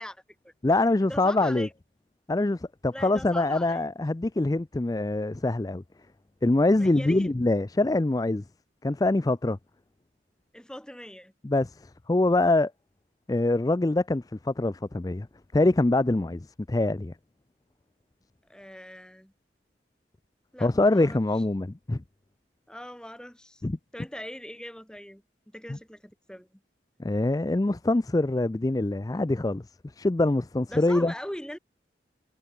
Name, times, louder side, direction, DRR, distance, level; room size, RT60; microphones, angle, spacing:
voice 1, 0.0-0.5 1.0-1.7 2.9-3.8 6.8-7.3 10.5-11.3 18.5-19.3 20.5-21.2 22.7-23.6 23.9-26.6 30.7-31.6, equal, 5° left, 2.6 m, -41 dB
voice 2, 0.6-1.7 2.3-5.8 6.4-8.4 8.8-9.6 11.4-12.7 13.3-15.3 15.5-17.1 20.6-22.0 23.6-23.8 25.7-25.8 27.0-29.6 30.0-31.1, left 2 dB, 20° left, 0.4 m, -24 dB
head